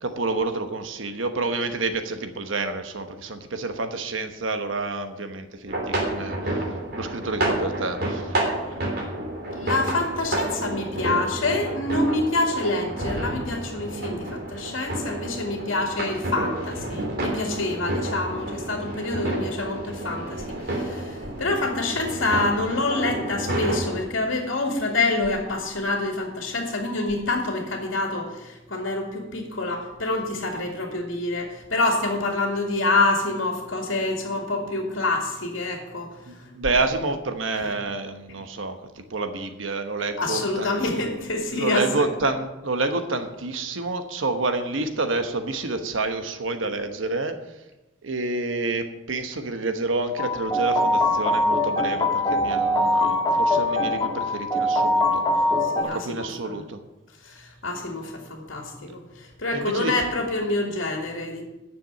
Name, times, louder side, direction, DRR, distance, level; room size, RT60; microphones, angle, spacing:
voice 1, 0.0-8.4 8.6-8.8 36.3-38.8 39.1-40.8 41.5-47.4 48.0-55.2 55.8-56.8 59.5-59.9, right 3 dB, 75° right, 7 dB, 1.1 m, -28 dB
sound 1, 5.7-24.0, right 1 dB, 55° right, 3.3 m, -30 dB
voice 2, 9.5-36.1 36.4-36.5 37.6-37.7 40.2-42.1 55.6-56.6 57.2-61.4, left 2 dB, 75° left, 2 dB, 2.2 m, -27 dB
sound 2, 50.2-55.8, left 1 dB, 20° left, 1.5 m, -22 dB
10.0 x 6.9 x 8.9 m, 1.0 s
head